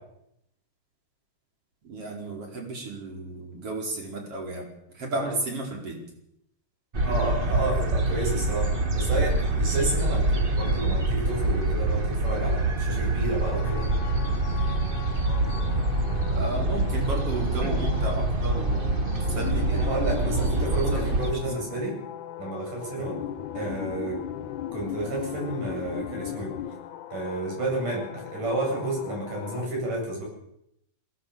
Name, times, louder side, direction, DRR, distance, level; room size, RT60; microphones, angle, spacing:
voice 1, 1.8-6.0 16.3-19.7 20.9-21.6, right 2 dB, 45° right, 0 dB, 5.5 m, -34 dB
sound 1, 6.9-21.3, right 2 dB, 65° right, 0.5 m, -25 dB
voice 2, 7.0-8.7 8.9-13.9 17.6-17.9 19.7-22.0 22.4-23.2 23.5-24.2 24.7-26.5 27.1-30.2, right 2 dB, 85° right, -1 dB, 9.6 m, -31 dB
sound 2, 13.4-29.7, left 10 dB, 80° left, 2.4 m, -38 dB
22.0 x 17.5 x 7.0 m, 0.78 s
omnidirectional pair, 3.6 m